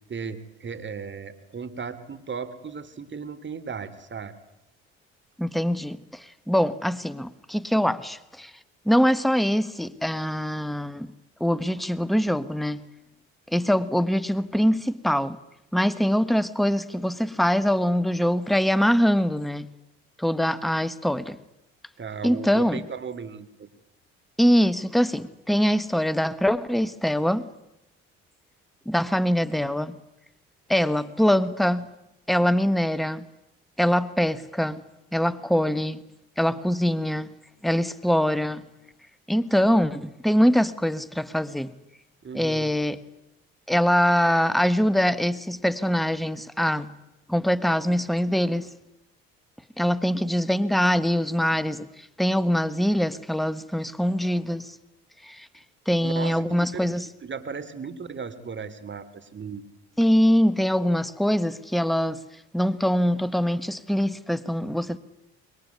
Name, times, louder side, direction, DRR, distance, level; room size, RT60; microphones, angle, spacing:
voice 1, 0.1-4.3 22.0-23.7 42.2-42.7 56.0-56.8 57.2-59.7, right 6 dB, 40° right, 3.1 m, -36 dB
voice 2, 5.4-8.5 8.8-11.1 11.4-12.8 13.5-15.4 15.7-19.7 20.2-21.4 22.2-22.8 24.4-27.5 28.8-29.9 30.7-31.9 32.3-33.2 33.8-34.8 35.1-36.0 36.4-37.3 37.6-38.6 39.3-41.7 42.3-43.0 43.7-46.9 47.3-48.7 49.8-54.7 55.2-55.5 55.9-57.1 60.0-62.2 62.5-65.0, equal, ahead, 1.4 m, -23 dB
26.0 x 22.0 x 9.5 m
supercardioid pair, 70°, 30 cm